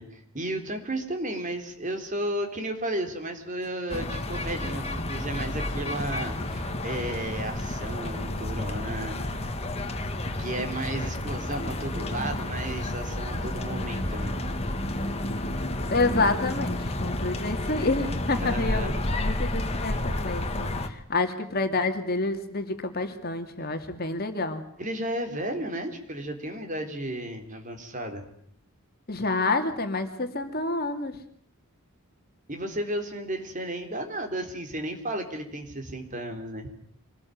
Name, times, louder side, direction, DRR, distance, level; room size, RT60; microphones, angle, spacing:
voice 1, 0.0-9.5 10.0-10.1 10.4-14.3 18.4-19.0 24.8-28.3 32.5-36.7, right 1 dB, 35° right, 5 dB, 4.0 m, -33 dB
sound 1, 3.9-20.9, left 1 dB, 30° left, 2.2 m, -31 dB
voice 2, 15.9-24.6 29.1-31.2, left 3 dB, 45° left, 6 dB, 2.6 m, -28 dB
26.0 x 20.0 x 9.4 m, 0.64 s
head